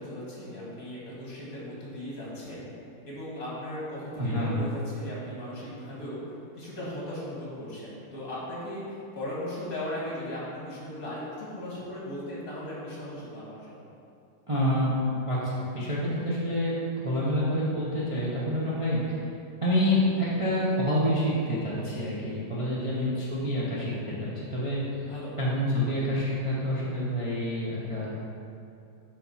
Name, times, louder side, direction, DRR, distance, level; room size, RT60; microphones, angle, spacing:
voice 1, 0.0-2.7 3.1-13.8 22.8-23.2 25.0-25.4 25.8-26.0, left 1 dB, 50° left, -6 dB, 2.2 m, -37 dB
voice 2, 4.2-4.7 14.5-14.9 15.2-16.7 17.0-19.2 19.6-24.1 24.5-24.8 25.4-28.1, equal, 25° right, -8 dB, 0.8 m, -27 dB
7.0 x 5.7 x 4.2 m, 2.6 s
omnidirectional pair, 1.9 m